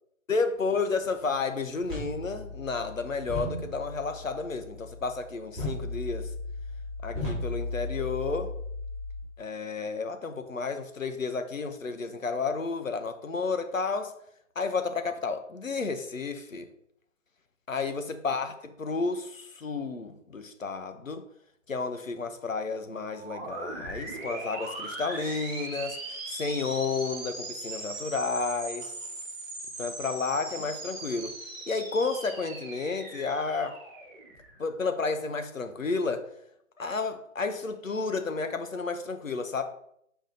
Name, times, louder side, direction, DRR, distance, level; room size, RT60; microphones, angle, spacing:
voice 1, 0.3-6.3 7.0-8.5 9.4-14.1 14.5-16.7 17.7-21.2 21.7-28.9 29.8-31.4 31.7-33.8 34.6-36.3 36.8-39.6, left 4 dB, 75° left, 1.1 m, -31 dB
sound 1, 1.8-9.2, left 2 dB, ahead, 2.2 m, -36 dB
sound 2, 23.1-34.8, right 2 dB, 20° right, 1.5 m, -39 dB
6.7 x 5.0 x 3.8 m
figure-of-eight pair, 150°, 40 cm